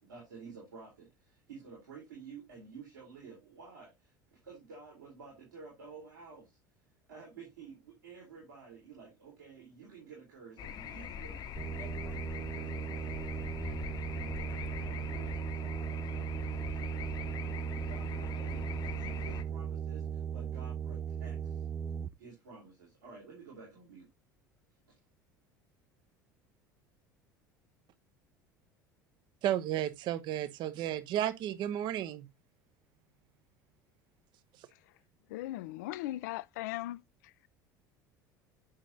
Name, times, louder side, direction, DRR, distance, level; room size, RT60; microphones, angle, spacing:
voice 1, 0.0-6.6 7.1-21.7 22.2-24.1 24.9-25.0, right 5 dB, 75° right, 3.4 m, -52 dB
sound 1, 10.6-19.4, left 7 dB, 40° left, 0.9 m, -42 dB
sound 2, 11.6-22.1, right 7 dB, 25° right, 0.4 m, -37 dB
voice 2, 29.4-32.3, right 11 dB, 45° right, 0.7 m, -33 dB
voice 3, 35.3-37.0, left 16 dB, 60° left, 0.4 m, -38 dB
8.8 x 6.0 x 2.8 m
figure-of-eight pair, 65°, 10 cm